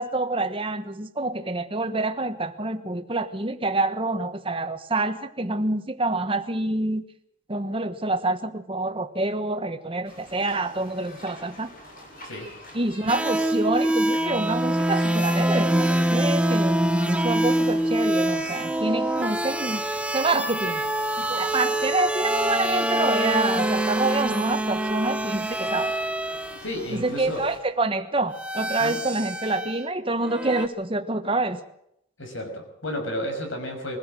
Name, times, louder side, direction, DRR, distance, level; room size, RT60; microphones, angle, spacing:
voice 1, 0.0-7.0 7.5-11.7 12.7-19.8 20.1-20.8 21.2-25.9 26.9-31.6, right 2 dB, 25° right, 9 dB, 1.3 m, -27 dB
sound 1, 10.0-27.6, left 1 dB, 45° left, 7.5 m, -45 dB
sound 2, 13.1-26.7 28.3-29.8 30.2-30.7, right 1 dB, 5° right, 1.0 m, -25 dB
voice 2, 26.6-27.4 28.8-29.0 32.2-34.0, left 1 dB, 75° left, 4 dB, 6.2 m, -32 dB
23.0 x 16.0 x 7.6 m, 0.77 s
head